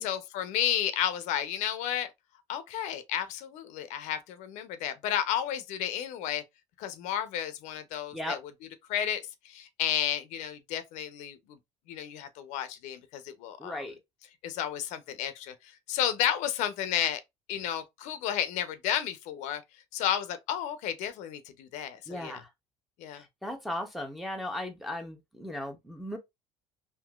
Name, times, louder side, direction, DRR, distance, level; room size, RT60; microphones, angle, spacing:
voice 1, 0.0-2.1 2.5-6.4 6.8-8.4 8.9-11.6 11.9-13.8 14.4-15.5 15.9-17.2 17.5-19.6 19.9-22.4 23.0-23.2, left 10 dB, 75° left, 0.6 m, -32 dB
voice 2, 13.6-14.0 22.1-22.5 23.1-26.2, left 1 dB, ahead, 0.6 m, -37 dB
3.7 x 2.7 x 2.3 m
cardioid pair, 135°, 12 cm